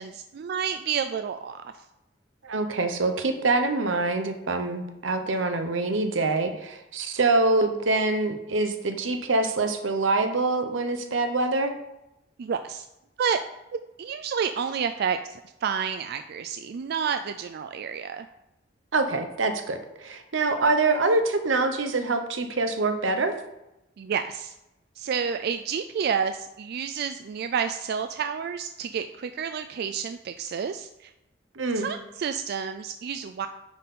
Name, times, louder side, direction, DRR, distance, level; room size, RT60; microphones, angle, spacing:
voice 1, 0.0-1.6 12.4-12.9 13.2-13.4 14.0-18.3 24.0-24.5 25.0-31.1 31.7-33.5, right 7 dB, 55° right, 8 dB, 0.3 m, -30 dB
voice 2, 2.4-11.7 18.9-23.4 31.6-31.9, right 3 dB, 85° right, 7 dB, 0.8 m, -25 dB
9.6 x 4.1 x 3.7 m, 0.91 s
head